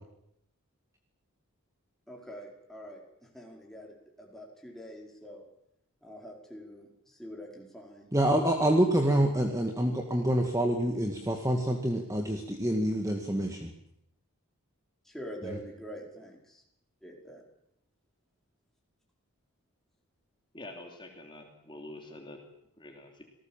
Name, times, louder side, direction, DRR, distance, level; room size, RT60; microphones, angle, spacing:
voice 1, 2.1-5.4 6.0-8.1 15.0-16.6 17.0-17.4, equal, ahead, -1 dB, 5.0 m, -45 dB
voice 2, 8.1-13.7 15.5-15.6, right 1 dB, 15° right, 3 dB, 1.9 m, -27 dB
voice 3, 20.5-22.4 22.8-23.2, left 1 dB, 20° left, 2 dB, 3.0 m, -46 dB
27.5 x 19.0 x 7.4 m, 0.77 s
head